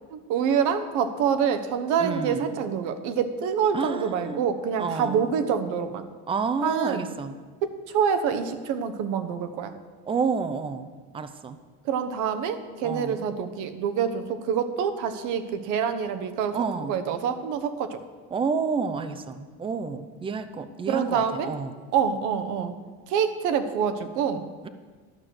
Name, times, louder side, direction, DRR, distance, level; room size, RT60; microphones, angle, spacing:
voice 1, 0.1-6.0 6.6-7.1 7.6-9.7 11.8-16.6 16.8-18.0 20.9-21.5 21.9-22.8 23.1-24.5, right 7 dB, 65° right, 9 dB, 1.1 m, -26 dB
voice 2, 2.0-2.5 3.7-4.4 4.8-5.3 6.3-7.4 10.1-11.6 12.8-13.2 16.5-17.0 18.3-21.7 24.6-24.7, right 5 dB, 15° right, 11 dB, 0.5 m, -30 dB
12.0 x 6.3 x 7.8 m, 1.4 s
cardioid pair, 150°, 32 cm